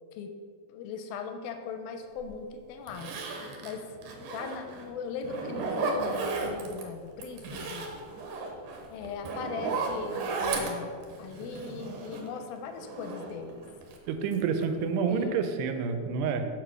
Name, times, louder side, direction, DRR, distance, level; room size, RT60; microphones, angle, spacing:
voice 1, 0.7-3.1 3.6-7.9 8.9-13.7 15.1-15.4, left 5 dB, 80° left, 7 dB, 2.2 m, -39 dB
Zipper (clothing), 2.2-2.3 2.9-4.9 5.2-6.8 7.2-12.4 12.8-14.0 14.3-14.8 15.1-15.2, right 3 dB, 70° right, 2.3 m, -34 dB
voice 2, 14.1-16.5, right 6 dB, 90° right, 7 dB, 2.8 m, -28 dB
7.4 x 4.9 x 6.1 m, 2.1 s
omnidirectional pair, 4.6 m